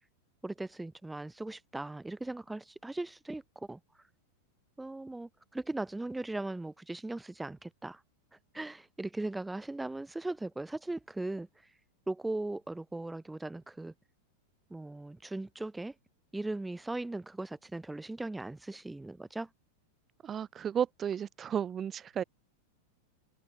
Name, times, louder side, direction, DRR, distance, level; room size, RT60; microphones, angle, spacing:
voice 1, 0.4-3.8 4.8-8.0 8.5-11.5 12.1-13.9 14.7-15.9 16.3-19.5, right 2 dB, 5° right, 5.8 m, -38 dB
voice 2, 20.2-22.2, right 8 dB, 25° right, 7.0 m, -33 dB
figure-of-eight pair, 90°, 0 cm